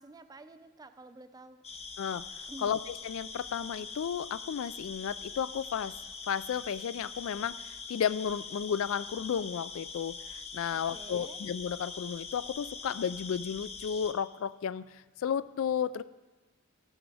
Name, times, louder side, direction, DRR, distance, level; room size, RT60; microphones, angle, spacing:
voice 1, 0.0-1.6 2.5-2.8 10.7-11.4, right 2 dB, 15° right, 11 dB, 0.5 m, -50 dB
sound 1, 1.6-14.1, left 5 dB, 30° left, 0.7 m, -43 dB
voice 2, 2.6-5.9 6.3-10.2 10.5-16.0, left 8 dB, 60° left, 17 dB, 0.3 m, -33 dB
13.0 x 9.9 x 4.8 m, 1.2 s
head